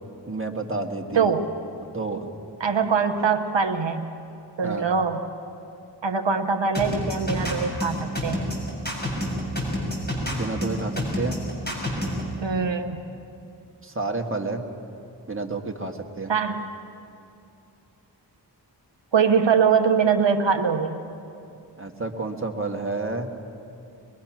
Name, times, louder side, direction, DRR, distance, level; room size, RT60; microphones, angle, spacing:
voice 1, 0.3-1.3 1.9-2.3 4.6-4.8 10.3-11.4 13.8-14.6 15.3-16.3 21.7-23.3, right 3 dB, 30° right, 2 dB, 1.7 m, -30 dB
voice 2, 1.1-1.5 2.6-4.1 4.6-5.3 6.0-8.5 12.4-13.0 16.3-16.7 19.1-21.0, right 6 dB, 85° right, 5 dB, 0.9 m, -22 dB
sound 1, 6.7-12.2, left 1 dB, 20° left, 6.7 m, -28 dB
22.5 x 21.5 x 6.0 m, 2.7 s
wide cardioid pair, 50°, 43 cm